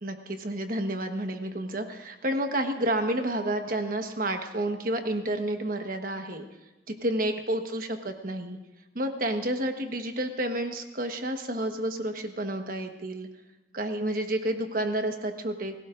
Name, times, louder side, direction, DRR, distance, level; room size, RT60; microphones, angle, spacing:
voice 1, 0.0-6.4 6.9-8.6 8.9-13.3 13.7-15.8, right 1 dB, 50° right, 5 dB, 1.3 m, -30 dB
29.5 x 16.5 x 2.5 m, 1.1 s
head